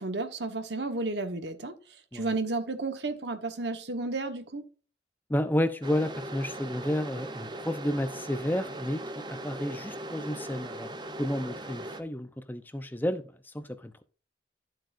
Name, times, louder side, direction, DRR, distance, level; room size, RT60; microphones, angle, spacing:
voice 1, 0.0-4.7, right 3 dB, 70° right, 1.3 m, -33 dB
voice 2, 5.3-10.9 11.2-14.0, left 1 dB, 10° left, 0.7 m, -31 dB
sound 1, 5.8-12.0, right 1 dB, 25° right, 0.7 m, -39 dB
11.5 x 7.7 x 2.6 m
head